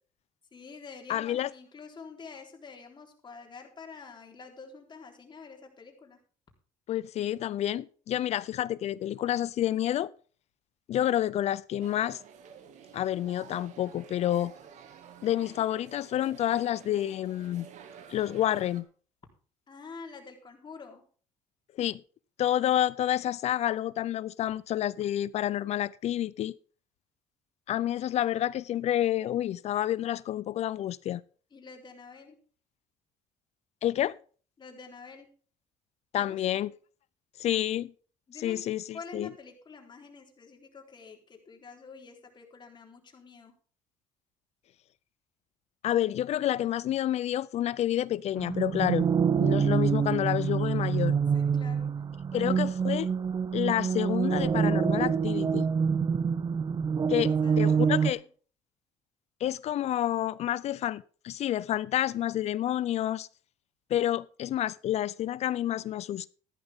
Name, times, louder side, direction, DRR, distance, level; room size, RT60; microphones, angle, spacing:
voice 1, 0.5-6.2 19.7-21.1 31.5-32.4 34.6-35.3 36.2-36.6 38.3-38.6 38.9-43.5 51.3-52.6 56.9-58.3, left 4 dB, 35° left, 3.7 m, -47 dB
voice 2, 1.1-1.5 6.9-10.1 10.9-12.2 12.9-14.5 15.2-17.7 18.1-18.9 21.7-22.0 22.4-26.5 27.7-31.2 33.8-34.2 36.1-36.7 37.4-37.9 38.4-39.3 45.8-49.1 49.4-51.1 52.3-53.1 53.5-55.7 57.1-58.2 59.4-63.3 63.9-66.3, left 12 dB, 55° left, 0.5 m, -29 dB
sound 1, 11.8-18.8, right 7 dB, 65° right, 2.1 m, -50 dB
sound 2, 48.4-58.1, right 6 dB, 30° right, 0.8 m, -26 dB
13.5 x 11.5 x 3.6 m
cardioid pair, 95°, 13 cm